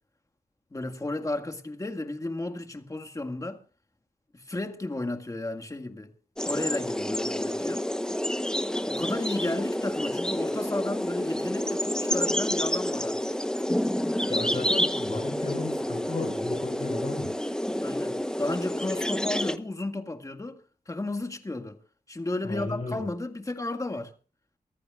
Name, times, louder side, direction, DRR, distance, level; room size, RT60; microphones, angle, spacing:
voice 1, 0.7-3.6 4.3-6.1 6.4-7.9 8.8-13.2 17.8-20.6 20.9-21.8 22.1-24.1, left 2 dB, 20° left, 1.9 m, -33 dB
sound 1, 6.4-19.6, equal, 5° left, 1.0 m, -29 dB
voice 2, 14.3-17.3 22.4-23.0, left 3 dB, 40° left, 5.6 m, -34 dB
24.0 x 15.0 x 2.4 m
wide cardioid pair, 130°, 15 cm